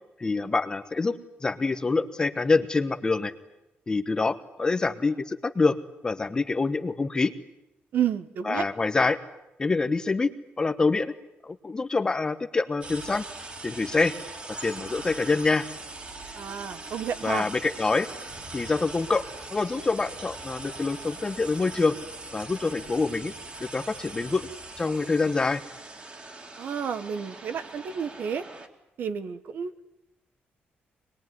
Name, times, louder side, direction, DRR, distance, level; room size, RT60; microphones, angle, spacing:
voice 1, 0.2-1.2 1.4-3.3 3.9-5.8 6.0-7.3 8.4-9.2 9.6-10.3 10.6-11.1 11.4-13.3 13.6-14.2 14.6-15.7 17.2-18.1 18.5-19.2 19.5-22.0 22.3-23.3 23.6-24.5 24.8-25.6, left 3 dB, 20° left, 9 dB, 1.2 m, -26 dB
voice 2, 7.9-8.6 16.4-17.5 26.6-28.4 29.0-29.7, right 8 dB, 60° right, 10 dB, 1.4 m, -30 dB
sound 1, 12.8-28.7, right 2 dB, 30° right, 2.8 m, -41 dB
24.5 x 21.5 x 9.6 m, 0.91 s
cardioid pair, 155°, 4 cm